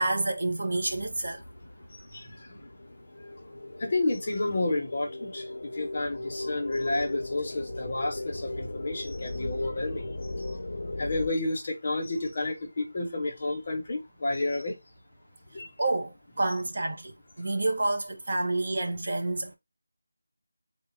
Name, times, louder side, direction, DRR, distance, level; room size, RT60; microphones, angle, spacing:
voice 1, 0.0-1.4 15.8-19.5, right 2 dB, 40° right, 0.7 m, -29 dB
sound 1, 0.8-11.3, left 2 dB, 60° left, 0.6 m, -38 dB
voice 2, 3.8-5.4 5.8-10.1 11.0-14.7 15.5-15.7, left 2 dB, 25° left, 1.0 m, -30 dB
4.1 x 2.4 x 4.6 m
figure-of-eight pair, 180°, 0 cm